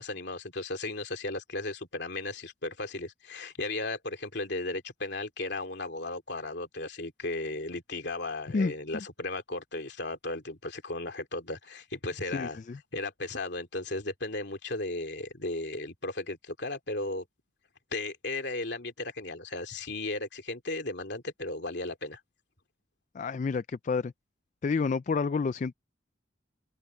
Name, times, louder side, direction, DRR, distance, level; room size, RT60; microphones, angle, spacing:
voice 1, 0.0-12.6 12.9-17.2 17.9-22.2, left 2 dB, 60° left, 3.1 m, -35 dB
voice 2, 8.5-9.0 12.2-12.8 23.1-24.1 24.6-25.7, left 4 dB, 40° left, 0.3 m, -30 dB
head